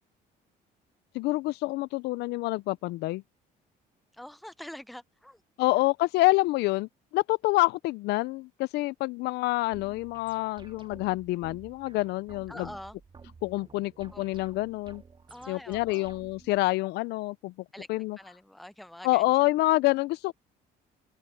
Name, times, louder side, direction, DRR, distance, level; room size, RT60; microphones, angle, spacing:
voice 1, 1.1-3.2 5.6-12.7 13.4-15.0 15.5-17.5 17.9-18.2 19.0-20.3, left 20 dB, 80° left, 0.4 m, -27 dB
voice 2, 4.1-5.4 12.5-13.0 14.1-14.2 15.3-16.1 17.7-17.9 18.2-19.3, left 1 dB, ahead, 0.5 m, -45 dB
sound 1, 9.7-16.6, right 5 dB, 30° right, 2.0 m, -52 dB
cardioid pair, 110°, 17 cm